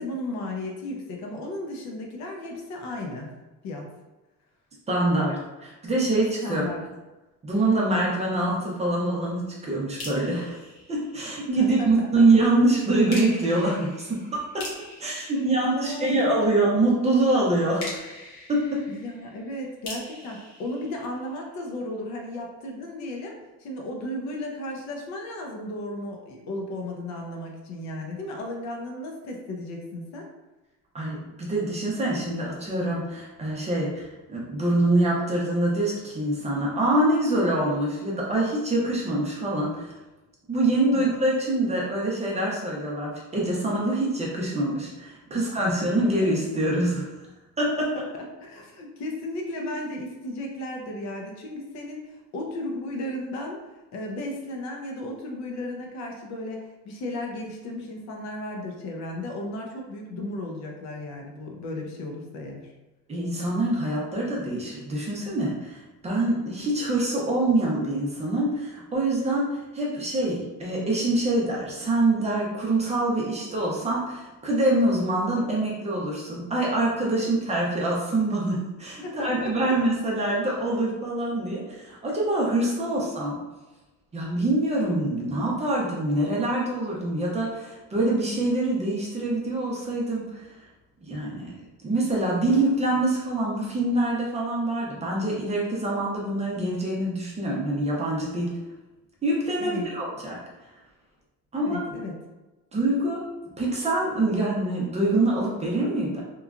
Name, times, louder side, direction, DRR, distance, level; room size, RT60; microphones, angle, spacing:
voice 1, 0.0-3.3 3.6-3.9 6.4-6.8 11.6-11.9 12.2-12.3 15.1-16.2 16.7-16.8 18.9-30.3 40.8-41.1 45.3-45.9 48.0-53.6 53.9-62.7 79.0-79.7 82.8-82.9 99.6-99.9 101.5-102.2, left 1 dB, 55° left, 1 dB, 0.6 m, -35 dB
voice 2, 4.9-6.6 7.4-10.6 10.9-14.6 15.0-18.0 18.5-18.8 30.9-39.9 40.5-47.1 47.6-47.9 63.1-69.5 69.7-83.4 84.1-90.5 91.0-91.5 91.8-98.5 99.2-100.4 101.5-101.8 102.7-103.2 103.6-106.2, right 2 dB, 20° right, -3 dB, 0.6 m, -25 dB
sound 1, 10.0-11.7 13.1-16.4 17.8-21.7, left 1 dB, 80° left, 1.0 m, -43 dB
2.9 x 2.3 x 2.4 m, 1.1 s
cardioid pair, 140°, 32 cm